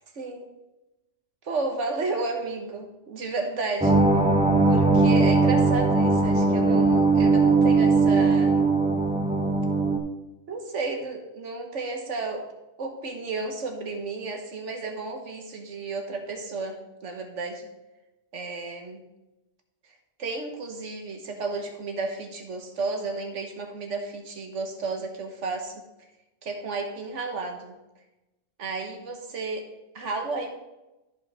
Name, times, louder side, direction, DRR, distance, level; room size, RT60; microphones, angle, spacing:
voice 1, 0.1-0.5 1.4-4.0 4.7-8.7 10.5-12.5 12.8-17.7 18.3-19.0 20.2-25.8 26.4-27.7 28.6-29.7 29.9-30.6, right 3 dB, 70° right, 4 dB, 1.5 m, -32 dB
sound 1, 3.8-10.0, right 3 dB, 5° right, 0.5 m, -20 dB
13.5 x 5.3 x 3.5 m, 1.0 s
omnidirectional pair, 1.3 m